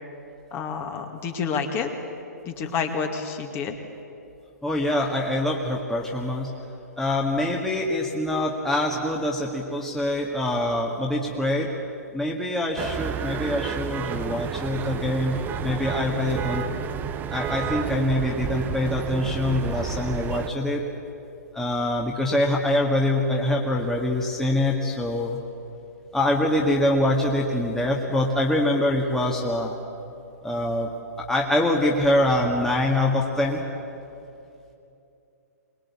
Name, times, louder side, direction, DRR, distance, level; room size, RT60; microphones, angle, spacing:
voice 1, 0.5-1.9 2.4-3.7, left 6 dB, 25° left, 4 dB, 2.3 m, -29 dB
voice 2, 4.6-6.5 7.0-11.7 12.1-16.6 17.3-20.8 21.5-25.4 26.1-29.8 30.4-30.9 31.2-33.6, left 1 dB, 5° left, -1 dB, 1.9 m, -24 dB
sound 1, 12.8-20.5, right 9 dB, 20° right, 0.8 m, -31 dB
23.5 x 20.5 x 8.5 m, 2.8 s
hypercardioid pair, 130°, 9 cm